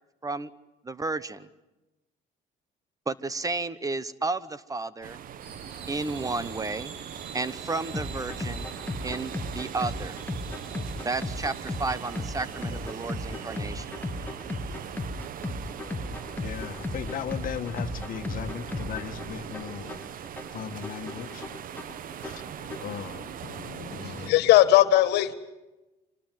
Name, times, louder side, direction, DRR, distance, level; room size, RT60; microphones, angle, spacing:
voice 1, 0.8-1.5 3.1-5.2 5.9-6.9 7.3-8.7 9.0-10.2 11.0-13.9, right 3 dB, 20° right, 17 dB, 1.0 m, -32 dB
sound 1, 5.0-24.3, right 9 dB, 55° right, 1.1 m, -41 dB
sound 2, 5.4-14.9, right 6 dB, 85° right, 2.6 m, -47 dB
sound 3, 7.9-22.9, left 2 dB, 10° left, 2.0 m, -36 dB
voice 2, 15.7-20.0 20.5-21.5 22.2-23.4 23.9-24.4, left 8 dB, 55° left, 8 dB, 1.7 m, -38 dB
voice 3, 23.4-25.3, left 14 dB, 80° left, 13 dB, 1.8 m, -21 dB
26.0 x 20.5 x 9.3 m, 1.0 s
cardioid pair, 110°, 17 cm